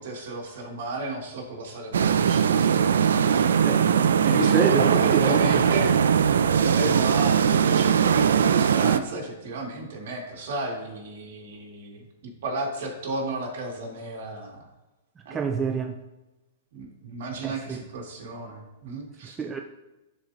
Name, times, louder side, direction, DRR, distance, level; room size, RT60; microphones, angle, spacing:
voice 1, 0.0-3.6 4.2-5.9 6.6-12.0 12.4-14.7 15.3-15.4 16.7-19.4, right 2 dB, 65° right, 1.9 m, -33 dB
sound 1, 1.9-9.0, right 7 dB, 85° right, 0.3 m, -20 dB
voice 2, 3.6-4.0 4.4-5.8 15.3-16.0 17.4-17.8 19.4-19.6, right 5 dB, 20° right, 0.4 m, -28 dB
11.5 x 4.3 x 2.6 m
hypercardioid pair, 130°, 0 cm